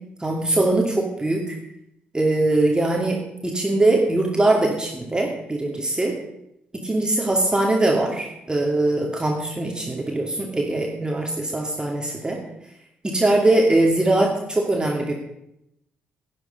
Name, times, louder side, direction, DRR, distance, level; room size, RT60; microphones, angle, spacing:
voice 1, 0.2-1.6 2.1-3.2 3.4-6.1 6.8-12.4 13.0-15.1, right 2 dB, 15° right, 0 dB, 2.5 m, -21 dB
17.0 x 9.6 x 5.3 m, 0.80 s
figure-of-eight pair, 40°, 5 cm